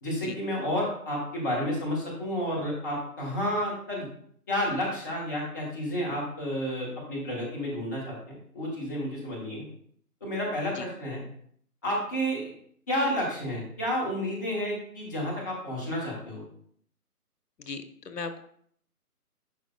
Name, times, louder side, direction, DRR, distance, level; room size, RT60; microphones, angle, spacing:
voice 1, 0.0-4.1 4.5-8.2 8.5-9.7 10.2-11.2 11.8-12.5 12.9-16.4, equal, 10° left, -4 dB, 0.9 m, -30 dB
voice 2, 17.6-18.4, left 4 dB, 85° left, 9 dB, 1.0 m, -37 dB
11.0 x 4.8 x 2.3 m, 0.63 s
figure-of-eight pair, 160°, 47 cm